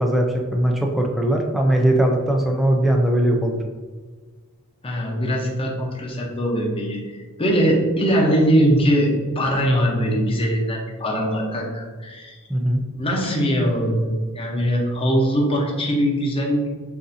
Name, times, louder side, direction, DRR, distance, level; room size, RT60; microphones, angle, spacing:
voice 1, 0.0-3.6 12.5-12.8, right 1 dB, ahead, 1 dB, 0.4 m, -20 dB
voice 2, 4.8-12.4 12.9-16.7, equal, 25° left, -1 dB, 0.8 m, -21 dB
6.6 x 2.7 x 2.7 m, 1.4 s
head